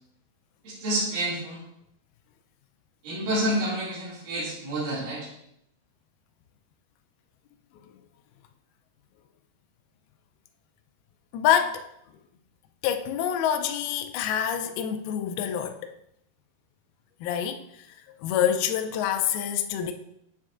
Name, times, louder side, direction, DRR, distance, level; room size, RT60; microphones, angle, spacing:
voice 1, 0.6-1.6 3.0-5.3, right 1 dB, 65° right, 3.9 m, -29 dB
voice 2, 11.3-11.9 12.8-15.9 17.2-17.9 18.2-19.9, left 9 dB, 80° left, 2.3 m, -26 dB
8.5 x 7.3 x 2.5 m
omnidirectional pair, 4.5 m